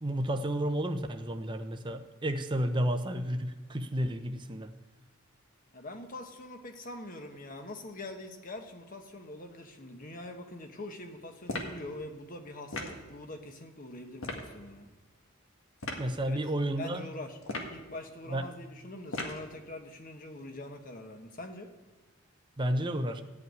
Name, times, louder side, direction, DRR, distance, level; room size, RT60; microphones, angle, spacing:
voice 1, 0.0-4.7 16.0-17.0 18.3-18.5 22.6-23.2, right 1 dB, 25° right, 7 dB, 0.7 m, -31 dB
voice 2, 5.7-14.9 16.2-16.4 16.7-17.4 17.7-21.7, left 2 dB, 40° left, 5 dB, 1.3 m, -44 dB
sound 1, 11.5-11.8 12.7-13.0 14.2-14.5 15.8-16.1 17.4-17.8 19.1-19.5, left 2 dB, 70° left, 1.8 m, -36 dB
14.0 x 5.7 x 9.2 m, 1.3 s
head